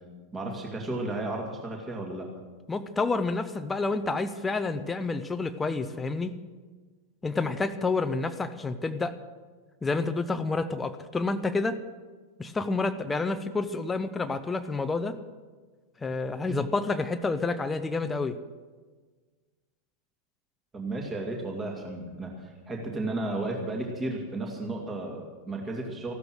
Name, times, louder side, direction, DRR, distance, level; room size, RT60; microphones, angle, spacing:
voice 1, 0.3-2.3 20.7-26.2, right 2 dB, 20° right, 1 dB, 2.5 m, -33 dB
voice 2, 2.7-6.4 7.2-9.2 9.8-11.8 12.4-15.2 16.0-18.4, left 3 dB, 15° left, 9 dB, 0.8 m, -29 dB
15.5 x 13.0 x 6.3 m, 1.4 s
figure-of-eight pair, 90°, 0 cm